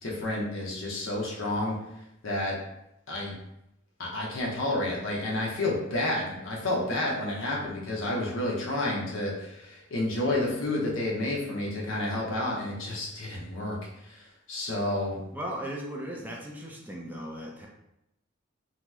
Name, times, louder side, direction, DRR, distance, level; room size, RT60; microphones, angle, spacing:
voice 1, 0.0-1.8 2.2-2.5 3.1-3.3 4.0-15.2, left 1 dB, 70° left, -3 dB, 0.8 m, -30 dB
voice 2, 15.3-17.7, equal, 10° right, -2 dB, 0.4 m, -37 dB
2.9 x 2.0 x 3.4 m, 0.83 s
head